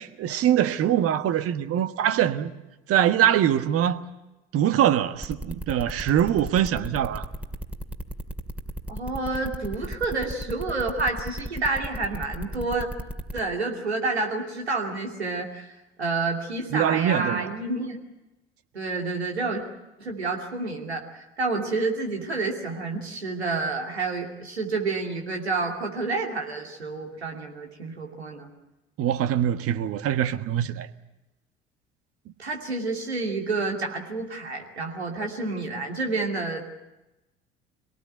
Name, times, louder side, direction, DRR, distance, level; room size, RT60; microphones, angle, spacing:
voice 1, 0.0-2.5 2.9-4.0 4.5-7.3 16.7-17.5 29.0-30.9, right 10 dB, 45° right, 1.4 m, -23 dB
sound 1, 5.2-13.4, equal, 5° right, 2.2 m, -34 dB
voice 2, 8.9-12.9 13.3-18.0 18.7-19.6 20.0-28.5 32.4-36.6, right 3 dB, 85° right, 2.7 m, -29 dB
25.0 x 18.5 x 9.2 m
figure-of-eight pair, 60°, 32 cm